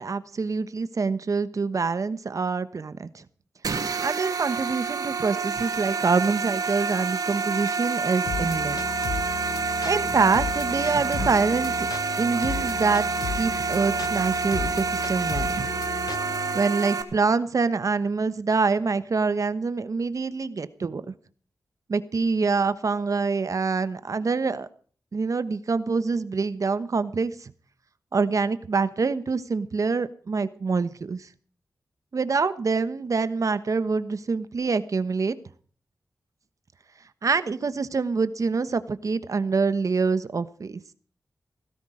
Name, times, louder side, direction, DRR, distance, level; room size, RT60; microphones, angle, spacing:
voice 1, 0.0-3.2 4.0-8.8 9.8-11.9 12.2-13.1 13.3-15.6 16.5-21.1 21.9-24.7 25.1-27.5 28.1-31.3 32.1-35.4 37.2-40.8, right 4 dB, 55° right, 13 dB, 1.1 m, -25 dB
sound 1, 3.6-17.0, right 5 dB, 75° right, 2.2 m, -28 dB
sound 2, 8.3-16.6, left 6 dB, 85° left, 1.1 m, -34 dB
17.5 x 15.5 x 5.0 m, 0.43 s
cardioid pair, 65°, 6 cm